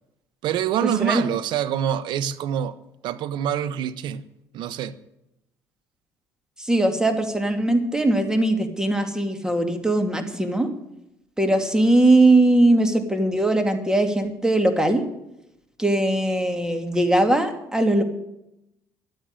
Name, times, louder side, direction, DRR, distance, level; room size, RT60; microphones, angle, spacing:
voice 1, 0.4-2.8 3.0-4.2 4.5-5.0, right 10 dB, 65° right, 1.0 m, -26 dB
voice 2, 6.6-10.7 11.4-15.0 15.8-18.0, right 1 dB, 10° right, 2.5 m, -20 dB
12.0 x 9.1 x 9.6 m
supercardioid pair, 75°, 8 cm